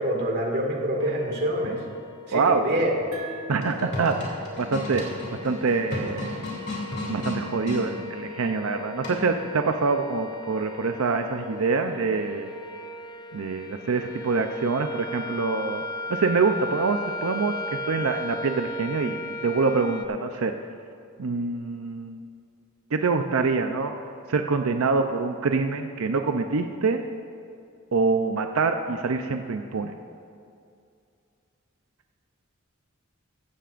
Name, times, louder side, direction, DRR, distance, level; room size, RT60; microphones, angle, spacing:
voice 1, 0.0-1.8 2.3-2.9, right 1 dB, 50° right, 0 dB, 2.1 m, -26 dB
sound 1, 1.0-20.1, left 2 dB, 20° left, 0.8 m, -37 dB
sound 2, 3.1-6.3, right 2 dB, 70° right, 1.5 m, -44 dB
sound 3, 3.5-7.9 9.0-9.5, left 1 dB, 55° left, 2.9 m, -33 dB
voice 2, 3.5-5.0 5.4-6.4 7.1-12.5 13.3-15.8 16.1-20.5 21.2-22.2 22.9-23.9 24.3-27.0 27.9-29.9, right 4 dB, 90° right, 6 dB, 0.6 m, -25 dB
15.0 x 15.0 x 2.5 m, 2.4 s
head